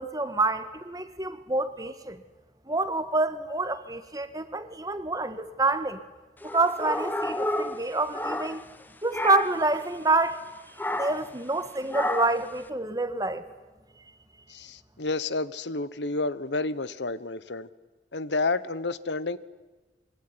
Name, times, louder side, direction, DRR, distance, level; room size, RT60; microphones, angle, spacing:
voice 1, 0.0-2.2 2.7-6.0 6.4-8.6 9.0-10.4 10.9-13.5, right 2 dB, 20° right, 1.7 m, -27 dB
sound 1, 6.4-8.8 9.1-9.7 10.8-11.3 11.9-12.5, left 1 dB, 10° left, 1.2 m, -31 dB
voice 2, 14.5-17.7 18.1-19.4, left 3 dB, 90° left, 1.2 m, -30 dB
25.5 x 23.5 x 9.9 m
head